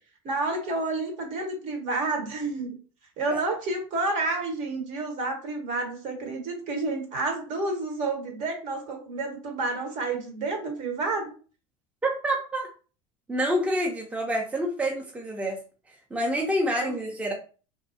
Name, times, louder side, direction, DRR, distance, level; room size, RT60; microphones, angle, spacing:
voice 1, 0.2-2.8 3.2-11.3 16.7-16.9, right 3 dB, 50° right, 2 dB, 1.1 m, -30 dB
voice 2, 12.0-12.7 13.3-15.6 16.1-17.3, equal, 10° right, 0 dB, 0.6 m, -27 dB
2.6 x 2.2 x 2.6 m, 0.37 s
hypercardioid pair, 80°, 16 cm